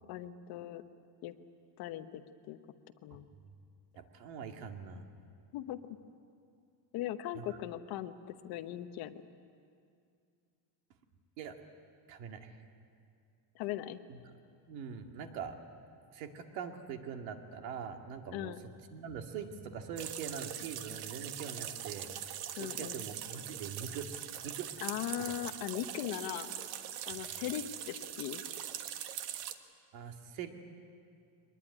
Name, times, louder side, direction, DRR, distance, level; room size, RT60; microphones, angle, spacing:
voice 1, 0.1-0.8 1.2-1.3 1.8-2.2 2.5-2.6 3.0-3.2 5.5-5.8 6.9-9.2 13.5-14.0 18.3-18.6 22.6-23.0 24.8-26.5 27.1-28.4, left 12 dB, 50° left, 10 dB, 1.0 m, -39 dB
voice 2, 3.1-3.5 4.0-5.0 7.3-7.6 11.4-11.6 12.1-12.6 14.1-14.2 14.7-15.6 16.1-18.5 18.9-22.1 22.6-24.1 24.4-24.7 25.3-25.4 27.1-27.2 29.9-30.5, right 7 dB, 90° right, 4 dB, 2.4 m, -43 dB
sound 1, 20.0-29.5, right 10 dB, 70° right, 1.5 m, -42 dB
23.0 x 20.5 x 9.8 m, 2.4 s
cardioid pair, 175°, 49 cm